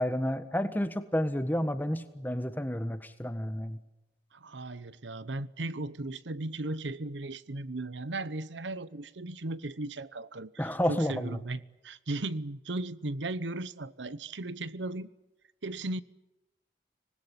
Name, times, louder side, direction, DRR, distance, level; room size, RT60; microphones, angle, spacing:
voice 1, 0.0-3.8 10.6-11.4, equal, 10° left, 1.4 m, -30 dB
voice 2, 4.3-15.1 15.6-16.0, right 2 dB, 90° right, 0.9 m, -36 dB
25.5 x 20.0 x 10.0 m
head